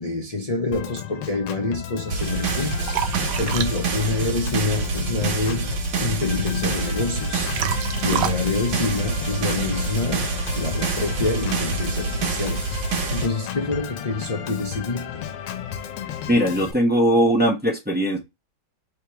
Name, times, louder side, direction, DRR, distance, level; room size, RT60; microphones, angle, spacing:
voice 1, 0.0-7.5 8.0-12.6 13.1-15.3, left 3 dB, 40° left, 0.5 m, -27 dB
Organ, 0.7-16.7, left 9 dB, 90° left, 1.3 m, -34 dB
Liquid, 2.0-9.8, right 9 dB, 70° right, 0.8 m, -32 dB
sound 1, 2.1-13.3, right 4 dB, 90° right, 1.7 m, -27 dB
voice 2, 16.3-18.2, equal, 10° right, 0.5 m, -19 dB
3.7 x 3.1 x 4.7 m
omnidirectional pair, 1.9 m